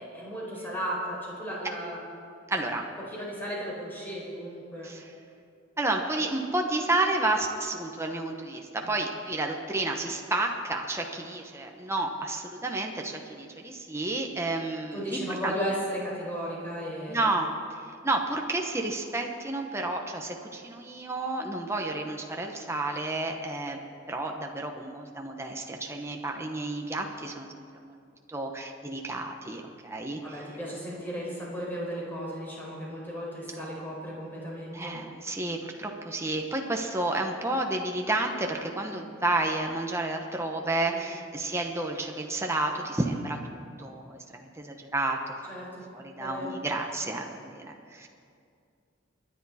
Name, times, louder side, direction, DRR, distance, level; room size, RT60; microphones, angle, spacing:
voice 1, 0.0-2.0 3.1-4.9 8.8-9.0 14.9-17.3 30.2-35.0 40.9-41.1 45.5-45.7 46.2-46.6, equal, 10° left, -5 dB, 4.9 m, -35 dB
voice 2, 2.5-2.8 4.8-5.1 5.8-15.5 17.1-17.5 18.0-23.8 24.1-27.5 27.8-28.0 28.3-30.5 34.7-45.3 45.9-48.1, right 2 dB, 15° right, 2 dB, 1.0 m, -31 dB
28.0 x 10.5 x 4.2 m, 2.4 s
head